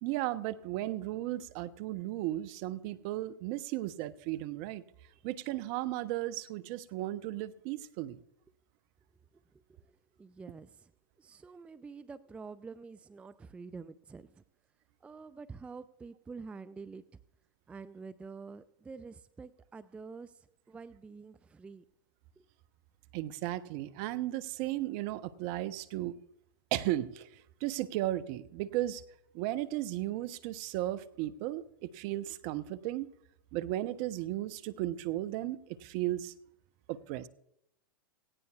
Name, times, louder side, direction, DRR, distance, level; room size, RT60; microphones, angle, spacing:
voice 1, 0.0-4.8 5.2-8.2 23.1-26.1 26.7-29.0 29.3-33.1 33.5-36.3 36.9-37.3, right 15 dB, 45° right, 14 dB, 0.7 m, -35 dB
voice 2, 9.3-10.9 11.2-14.4 15.0-17.2 17.7-21.8 22.4-22.5, right 4 dB, 10° right, 14 dB, 0.4 m, -48 dB
17.5 x 16.5 x 2.3 m, 0.78 s
figure-of-eight pair, 95°, 11 cm